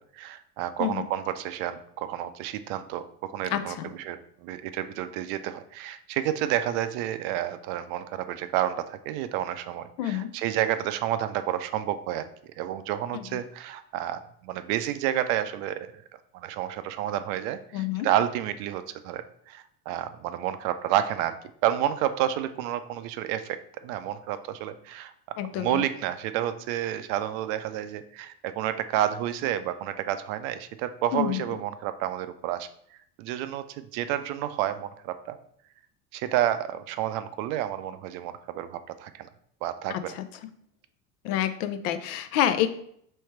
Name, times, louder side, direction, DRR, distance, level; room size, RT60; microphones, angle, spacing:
voice 1, 0.1-3.8 4.1-12.3 12.6-15.9 16.3-21.4 21.6-23.6 23.8-32.7 33.2-35.4 36.1-39.3 39.6-40.1, right 12 dB, 65° right, 11 dB, 0.5 m, -30 dB
voice 2, 0.8-1.1 3.4-3.9 10.0-10.3 13.1-13.4 17.7-18.1 25.4-25.8 31.1-31.6 39.9-40.5 41.2-42.7, left 11 dB, 70° left, 10 dB, 0.6 m, -28 dB
3.3 x 3.1 x 4.4 m, 0.66 s
hypercardioid pair, 80°, 47 cm